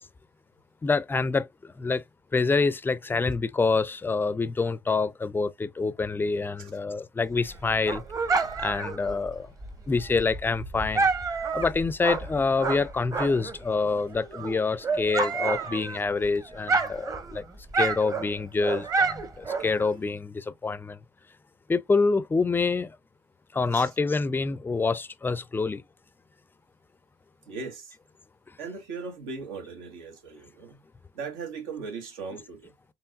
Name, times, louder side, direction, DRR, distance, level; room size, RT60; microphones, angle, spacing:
voice 1, 0.8-2.0 2.3-8.0 8.6-9.5 9.9-11.1 11.5-17.4 17.7-21.0 21.7-23.0 23.5-25.8, left 4 dB, 15° left, 0.4 m, -26 dB
Dog, 7.3-13.6 14.0-16.3 16.5-20.0, right 4 dB, 25° right, 1.0 m, -29 dB
voice 2, 27.5-28.0 28.6-30.8 31.1-32.7, right 4 dB, 85° right, 1.6 m, -38 dB
4.5 x 3.3 x 2.4 m
supercardioid pair, 75°, 13 cm